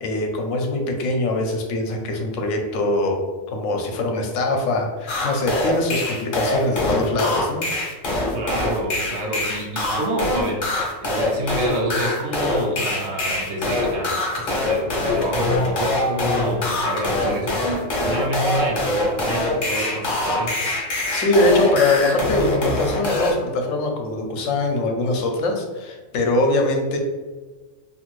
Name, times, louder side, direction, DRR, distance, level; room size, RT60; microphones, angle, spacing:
voice 1, 0.0-3.2 3.5-7.6 20.9-27.0, left 2 dB, 80° left, 3 dB, 0.9 m, -22 dB
sound 1, 5.1-23.3, left 2 dB, 50° left, 0.7 m, -23 dB
voice 2, 8.3-20.5, right 1 dB, 65° right, -2 dB, 0.9 m, -28 dB
2.6 x 2.5 x 3.0 m, 1.3 s
omnidirectional pair, 1.3 m